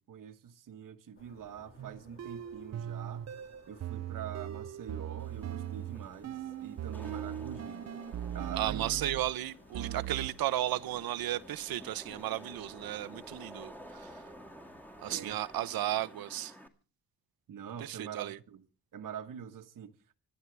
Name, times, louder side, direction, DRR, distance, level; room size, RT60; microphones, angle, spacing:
voice 1, 0.1-3.3 3.7-7.9 8.3-8.9 15.1-15.4 17.5-18.6 18.9-20.2, right 8 dB, 65° right, 1.3 m, -44 dB
sound 1, 1.1-15.6, left 4 dB, 35° left, 2.7 m, -60 dB
sound 2, 1.8-9.3 9.7-10.5, right 11 dB, 50° right, 0.6 m, -39 dB
Wind / Rain, 5.2-16.7, equal, 5° left, 2.0 m, -52 dB
voice 2, 8.5-14.2 15.0-16.5 17.8-18.4, right 13 dB, 80° right, 0.8 m, -34 dB
26.0 x 12.5 x 3.4 m
cardioid pair, 115°, 35 cm